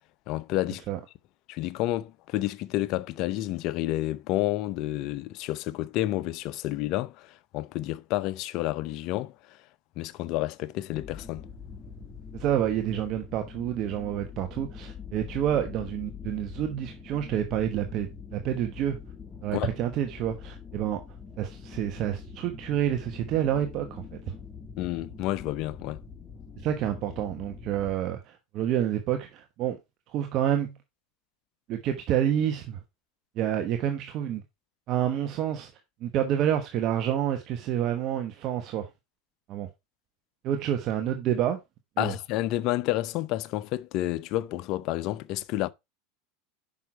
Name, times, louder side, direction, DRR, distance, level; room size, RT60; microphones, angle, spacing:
voice 1, 0.3-0.8 1.5-9.6 10.0-11.4 19.5-19.8 24.8-26.0 42.0-45.7, left 15 dB, 55° left, 0.6 m, -30 dB
sound 1, 10.9-27.9, left 6 dB, 20° left, 2.1 m, -44 dB
voice 2, 12.3-19.0 19.4-21.0 21.4-24.0 26.6-29.8 30.1-30.7 31.7-32.8 33.4-34.4 34.9-35.7 36.0-38.9 39.5-39.7 40.4-41.6 42.0-42.1, right 10 dB, 50° right, 1.1 m, -28 dB
6.3 x 5.6 x 4.5 m
hypercardioid pair, 95°, 0 cm